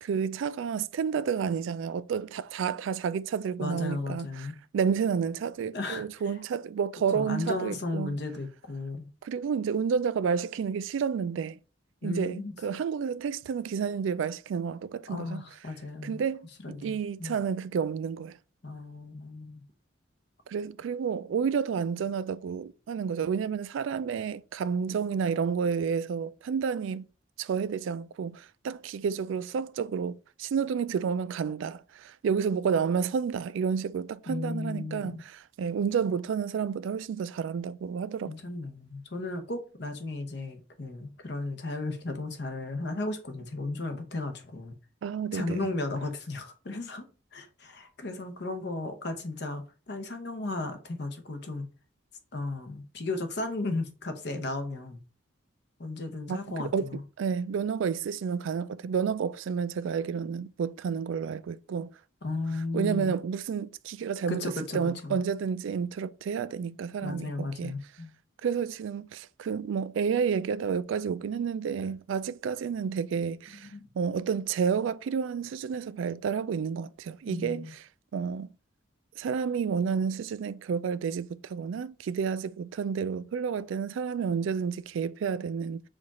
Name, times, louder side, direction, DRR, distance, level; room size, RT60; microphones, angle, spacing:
voice 1, 0.0-8.2 9.2-11.6 12.0-15.4 16.0-18.4 20.5-27.1 27.4-38.3 45.0-45.7 56.3-61.9 62.7-67.8 68.4-73.7 74.0-77.8 78.1-78.5 79.2-85.8, right 6 dB, 75° right, 0.3 m, -30 dB
voice 2, 3.6-4.6 5.7-6.1 7.1-9.1 12.0-12.5 15.1-16.2 16.6-17.4 18.6-19.6 34.3-35.2 38.2-44.7 45.3-47.0 47.3-51.7 52.3-55.0 55.8-57.0 62.2-63.2 64.3-65.2 67.0-68.1 73.5-73.9 77.3-77.7, left 2 dB, 55° left, 0.8 m, -35 dB
4.8 x 2.4 x 4.1 m
head